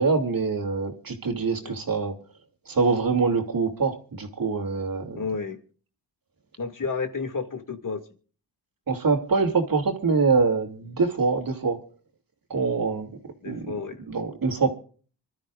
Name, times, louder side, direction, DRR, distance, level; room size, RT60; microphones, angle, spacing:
voice 1, 0.0-2.1 2.7-5.2 8.9-11.8 12.5-13.1 13.4-13.7 14.1-14.8, right 4 dB, 50° right, 4 dB, 2.7 m, -24 dB
voice 2, 5.1-5.6 6.6-8.0 13.4-14.0, left 5 dB, 45° left, 6 dB, 2.3 m, -31 dB
25.5 x 13.0 x 2.5 m, 0.41 s
cardioid pair, 70°, 43 cm